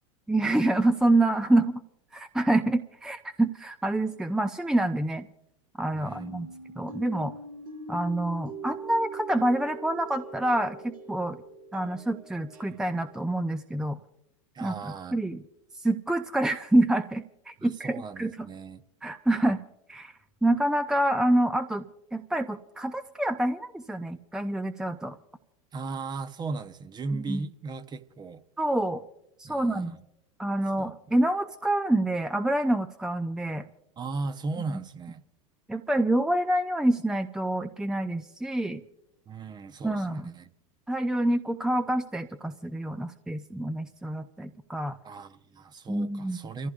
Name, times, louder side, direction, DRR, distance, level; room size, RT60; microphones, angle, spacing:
voice 1, 0.3-1.8 2.1-5.3 5.8-7.3 7.9-11.4 11.7-14.0 14.6-15.4 15.7-18.5 19.0-19.6 19.9-20.1 20.4-21.9 22.1-25.2 27.1-27.4 28.6-29.0 29.4-30.0 30.4-33.7 35.7-38.8 39.8-40.3 40.9-45.0 45.9-46.4, right 1 dB, 5° right, 0.5 m, -27 dB
voice 2, 5.9-6.5 14.5-15.2 17.6-18.8 25.7-28.4 29.4-30.0 30.8-30.9 34.0-35.2 39.3-40.5 45.0-46.7, right 3 dB, 25° right, 0.9 m, -37 dB
sound 1, 6.1-13.4, right 2 dB, 75° right, 5.5 m, -43 dB
29.0 x 15.0 x 2.5 m
hypercardioid pair, 100°, 18 cm